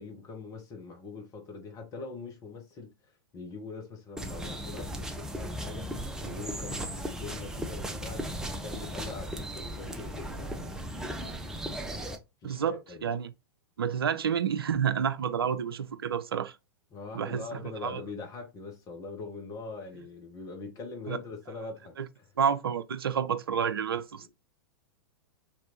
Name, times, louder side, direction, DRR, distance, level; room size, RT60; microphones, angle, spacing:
voice 1, 0.0-5.9 6.2-11.1 12.4-13.1 16.9-22.2 24.2-24.3, left 4 dB, 25° left, 1.1 m, -43 dB
sound 1, 4.2-12.2, equal, 5° right, 0.4 m, -37 dB
voice 2, 12.4-13.3 13.8-16.6 17.1-18.0 21.1-21.2 22.0-22.1 22.4-24.3, right 7 dB, 70° right, 0.4 m, -29 dB
3.0 x 2.6 x 2.9 m
figure-of-eight pair, 100°, 13 cm